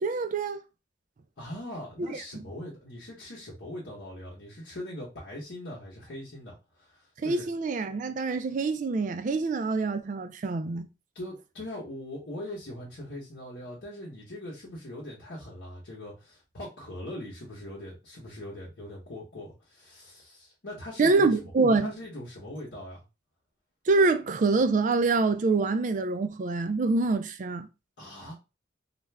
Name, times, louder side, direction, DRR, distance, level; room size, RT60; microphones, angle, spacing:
voice 1, 0.0-0.6 2.0-2.4 7.2-10.9 21.0-21.9 23.9-27.7, right 3 dB, 45° right, 0.3 m, -25 dB
voice 2, 1.4-7.5 11.1-21.3 21.8-23.0 28.0-28.3, left 1 dB, 80° left, 0.9 m, -41 dB
2.4 x 2.2 x 3.3 m
head